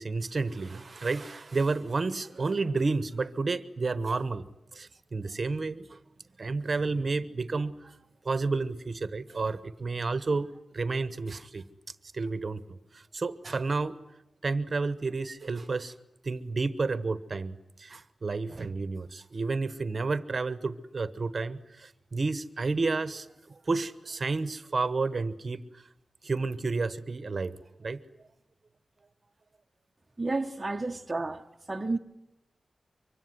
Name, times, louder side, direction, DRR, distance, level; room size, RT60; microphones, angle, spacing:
voice 1, 0.0-6.0 6.4-7.9 8.2-11.6 12.1-14.0 14.4-15.9 16.2-25.8 26.2-28.0, right 3 dB, 40° right, 1.1 m, -31 dB
voice 2, 30.2-31.4 31.7-32.0, right 2 dB, 20° right, 1.0 m, -31 dB
24.5 x 24.5 x 9.7 m
wide cardioid pair, 160°, 0 cm